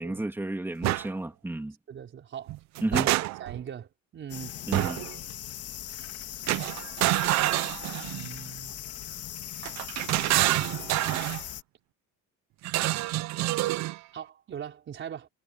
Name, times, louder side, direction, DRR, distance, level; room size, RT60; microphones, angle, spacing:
voice 1, 0.0-1.7 2.8-3.1 4.7-5.0, right 2 dB, 5° right, 2.6 m, -32 dB
sound 1, 0.8-1.1 2.5-3.6 4.7-5.1 6.5-8.3 9.6-11.4 12.6-14.0, right 18 dB, 55° right, 0.5 m, -27 dB
voice 2, 1.9-2.6 2.9-4.5 7.9-8.8 14.1-15.3, right 9 dB, 35° right, 4.9 m, -41 dB
sound 2, 4.3-11.6, left 11 dB, 45° left, 1.9 m, -40 dB
cardioid pair, 175°, 33 cm